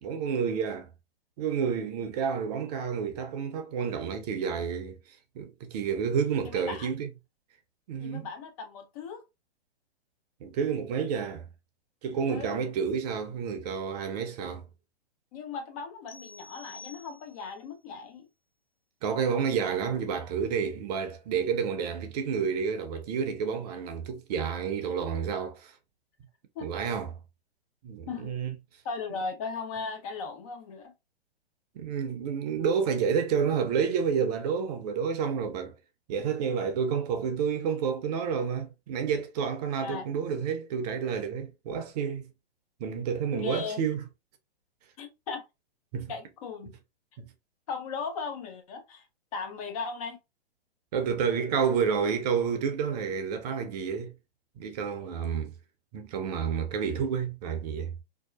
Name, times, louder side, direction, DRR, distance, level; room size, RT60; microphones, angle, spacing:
voice 1, 0.0-0.9 1.4-7.1 7.9-8.3 10.4-11.5 12.0-14.7 19.0-25.7 26.6-27.2 27.8-28.5 29.1-29.2 31.8-35.7 36.1-42.3 42.8-44.0 45.9-46.1 47.2-47.3 50.9-54.1 54.6-55.5 55.9-57.9, right 6 dB, 40° right, 0.6 m, -30 dB
voice 2, 6.4-6.9 8.0-9.2 12.3-12.6 15.3-18.3 26.6-26.7 28.1-28.4 28.8-30.9 39.8-40.1 43.3-43.8 45.0-45.4 46.1-46.7 47.7-49.0 49.3-50.2, left 5 dB, 35° left, 0.5 m, -37 dB
sound 1, 16.1-17.6, left 4 dB, 70° left, 1.2 m, -49 dB
2.7 x 2.2 x 2.3 m
hypercardioid pair, 125°, 31 cm